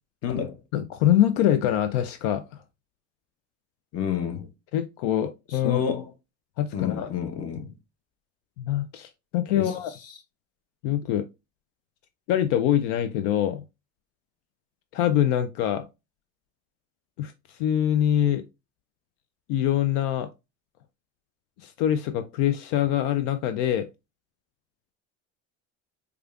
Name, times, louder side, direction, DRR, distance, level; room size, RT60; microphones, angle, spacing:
voice 1, 0.2-0.6 3.9-4.5 5.6-6.1 6.7-7.7 9.5-9.7, left 8 dB, 45° left, 0.8 m, -29 dB
voice 2, 0.7-2.6 4.7-5.8 6.6-7.1 8.6-9.9 10.8-11.3 12.3-13.6 14.9-15.9 17.2-18.4 19.5-20.3 21.6-23.9, left 11 dB, 80° left, 0.5 m, -24 dB
4.8 x 2.3 x 2.3 m
supercardioid pair, 105°, 34 cm